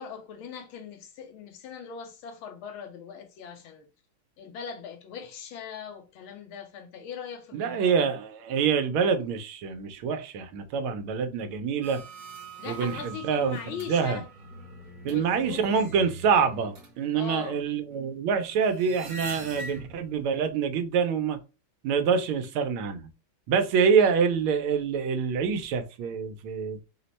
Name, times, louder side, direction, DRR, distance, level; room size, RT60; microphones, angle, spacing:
voice 1, 0.0-3.9 4.4-8.1 12.6-14.3 15.0-15.8 17.1-17.6 24.0-24.1, left 7 dB, 80° left, 1.6 m, -40 dB
voice 2, 7.5-12.0 12.6-13.6 13.9-14.2 15.0-21.4 21.8-23.1 23.5-26.8, right 6 dB, 90° right, 1.6 m, -26 dB
sound 1, 11.8-20.2 20.6-20.7, right 2 dB, 55° right, 1.8 m, -43 dB
4.6 x 2.1 x 4.0 m
omnidirectional pair, 2.3 m